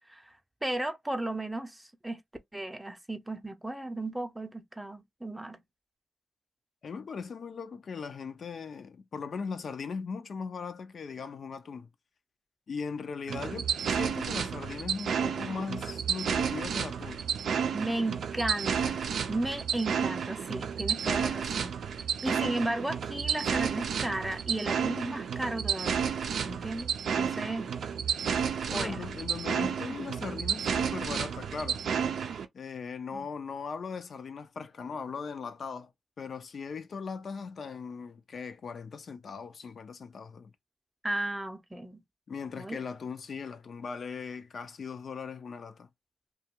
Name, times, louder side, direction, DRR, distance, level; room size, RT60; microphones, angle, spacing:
voice 1, 0.6-2.2 2.5-5.6 17.7-21.7 22.2-26.1 26.4-27.9 28.7-29.1 33.1-33.3 41.0-42.0 42.6-42.8, right 1 dB, 10° right, 0.6 m, -35 dB
voice 2, 6.8-11.9 12.7-17.2 27.3-27.7 28.7-31.8 32.5-35.9 36.2-40.5 42.3-45.9, left 5 dB, 60° left, 0.5 m, -39 dB
sound 1, 13.3-32.5, right 7 dB, 75° right, 0.4 m, -31 dB
2.4 x 2.3 x 2.9 m
cardioid pair, 60°, 0 cm